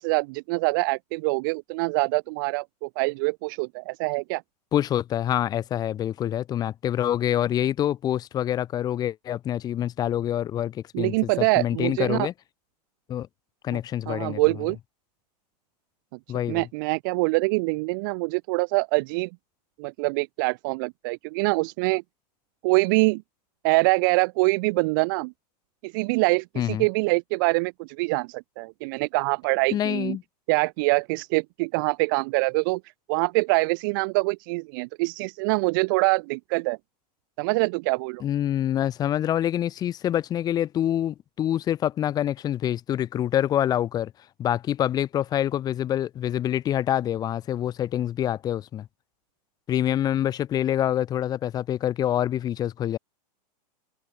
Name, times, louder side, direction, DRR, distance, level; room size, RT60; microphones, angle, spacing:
voice 1, 0.0-4.4 10.9-12.3 13.7-13.8 14.1-14.8 16.5-19.3 19.8-22.0 22.6-23.2 23.6-25.3 25.8-30.2 30.5-32.8 33.1-36.8 37.4-38.2, right 28 dB, 30° right, 0.6 m, -24 dB
voice 2, 4.7-12.3 13.1-13.3 13.6-14.4 16.3-16.7 26.6-26.8 29.7-30.2 38.2-44.1 44.4-48.9 49.7-53.0, left 11 dB, 20° left, 2.4 m, -26 dB
supercardioid pair, 170°, 21 cm